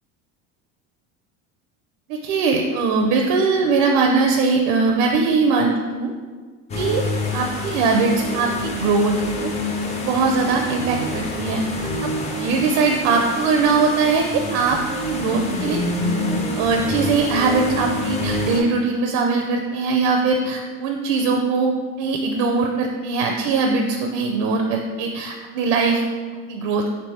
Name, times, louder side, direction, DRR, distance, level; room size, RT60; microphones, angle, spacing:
voice 1, 2.1-6.1 6.7-7.0 7.3-9.5 10.0-14.8 15.1-16.1 16.5-21.7 22.0-26.0 26.5-26.8, right 4 dB, 65° right, 2 dB, 0.5 m, -21 dB
sound 1, 6.7-18.6, left 1 dB, 20° left, 0.4 m, -27 dB
3.3 x 3.1 x 4.0 m, 1.5 s
cardioid pair, 140°, 36 cm